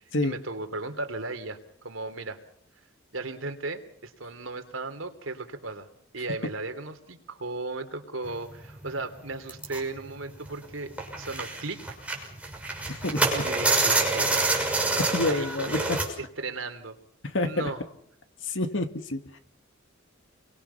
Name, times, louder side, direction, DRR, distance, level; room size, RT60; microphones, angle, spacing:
voice 1, 0.0-1.6 1.8-2.4 3.1-5.9 6.1-11.8 13.3-14.5 15.0-15.9 16.2-17.0 17.4-17.8, right 3 dB, 80° right, 7 dB, 3.1 m, -36 dB
sound 1, 8.2-8.3 8.6-8.9 9.5-10.6 11.0-16.1, right 2 dB, 5° right, 6.0 m, -27 dB
voice 2, 12.9-13.2 15.1-15.8 17.2-17.5 18.4-19.4, left 2 dB, 70° left, 8 dB, 2.3 m, -28 dB
29.0 x 23.5 x 5.8 m, 0.66 s
head